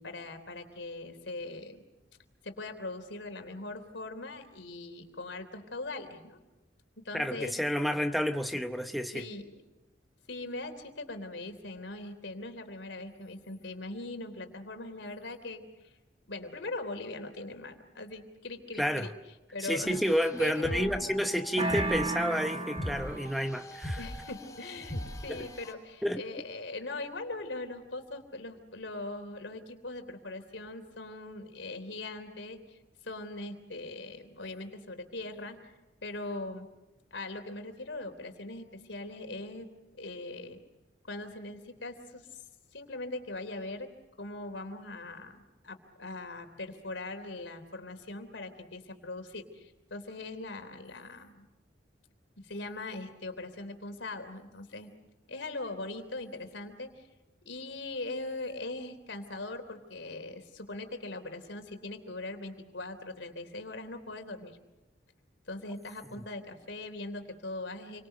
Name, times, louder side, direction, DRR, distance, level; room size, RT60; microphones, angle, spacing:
voice 1, 0.0-1.8 2.4-6.4 7.0-7.6 9.1-9.5 10.3-15.9 16.3-19.1 19.5-20.0 20.4-21.3 24.0-35.7 36.0-36.7 37.1-39.7 40.0-40.6 41.1-42.4 42.7-43.9 44.2-51.5 52.4-54.9 55.3-57.1 57.4-64.6 65.5-68.1, left 2 dB, 80° left, 3.4 m, -41 dB
voice 2, 7.1-9.3 18.8-19.1 19.6-24.0 25.3-25.4 26.0-26.2, equal, ahead, 0.9 m, -30 dB
sound 1, 19.9-25.7, left 1 dB, 20° left, 3.6 m, -41 dB
sound 2, 21.6-23.5, right 2 dB, 30° right, 1.6 m, -33 dB
29.0 x 24.5 x 6.8 m
head